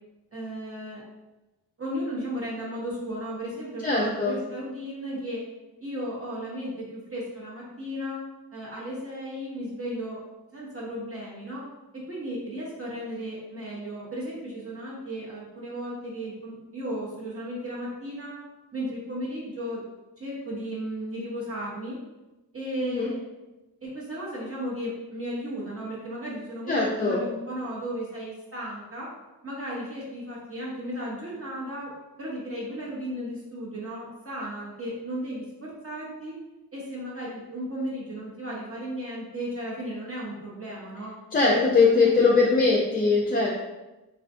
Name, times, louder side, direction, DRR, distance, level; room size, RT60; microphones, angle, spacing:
voice 1, 0.3-1.0 1.8-5.4 5.8-8.2 8.5-10.2 10.5-11.7 11.9-18.4 18.7-19.8 20.2-22.0 22.5-23.2 23.8-29.1 29.4-31.9 32.2-36.4 36.7-41.1 41.5-42.5, equal, 35° right, -5 dB, 0.8 m, -35 dB
voice 2, 3.8-4.4 22.8-23.1 26.7-27.2 41.3-43.5, left 4 dB, 20° left, -3 dB, 0.4 m, -21 dB
2.4 x 2.4 x 2.4 m, 1.1 s
cardioid pair, 50°, 41 cm